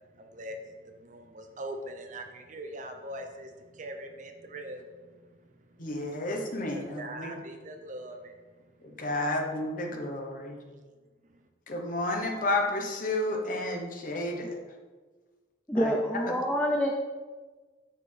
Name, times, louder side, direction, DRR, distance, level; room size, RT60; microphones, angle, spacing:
voice 1, 0.1-6.2 6.7-8.6 8.9-9.4, right 1 dB, 40° right, 5 dB, 0.7 m, -43 dB
voice 2, 5.8-7.3 8.8-10.6 11.7-14.5 15.8-16.0, left 2 dB, 45° left, 2 dB, 1.0 m, -31 dB
voice 3, 15.7-16.9, equal, 10° left, 0 dB, 0.5 m, -27 dB
6.8 x 6.6 x 3.4 m, 1.4 s
head